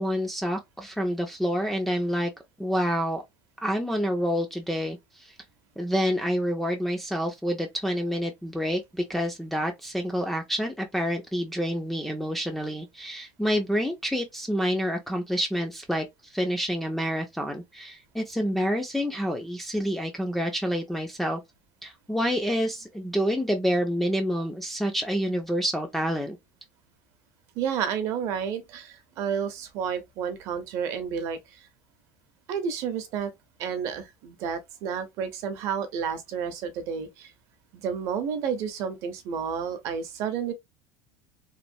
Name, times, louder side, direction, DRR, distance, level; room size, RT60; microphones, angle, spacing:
voice 1, 0.0-2.3 2.6-3.2 3.6-5.3 5.8-21.4 21.8-26.4, equal, ahead, 0.3 m, -28 dB
voice 2, 27.6-31.6 32.5-33.3 33.6-37.3 37.7-40.5, right 7 dB, 45° right, 0.6 m, -31 dB
3.0 x 2.1 x 2.5 m
cardioid pair, 170°, 7 cm